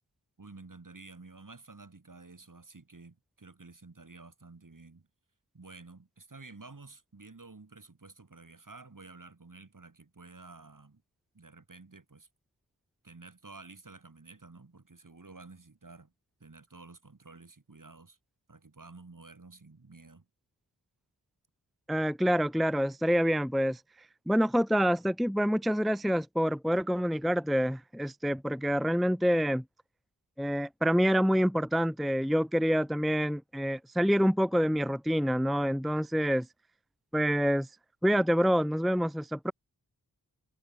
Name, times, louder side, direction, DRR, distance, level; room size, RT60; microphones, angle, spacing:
voice 1, 0.4-5.1 5.5-11.0 11.3-12.3 13.0-16.1 16.4-18.2 18.5-20.3, right 3 dB, 50° right, 5.1 m, -51 dB
voice 2, 21.9-23.8 24.3-29.6 30.4-36.5 37.1-37.7 38.0-39.5, equal, ahead, 0.8 m, -27 dB
wide cardioid pair, 60°, 41 cm